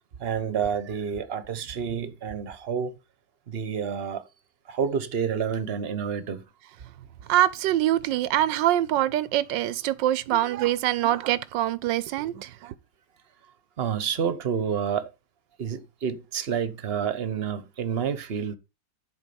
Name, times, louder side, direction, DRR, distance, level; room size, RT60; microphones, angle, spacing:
voice 1, 0.2-2.9 3.5-4.3 4.7-6.4 13.8-15.1 15.6-18.5, right 7 dB, 40° right, 1.0 m, -29 dB
voice 2, 7.3-12.7, right 13 dB, 85° right, 1.4 m, -24 dB
12.0 x 4.4 x 7.0 m
omnidirectional pair, 2.0 m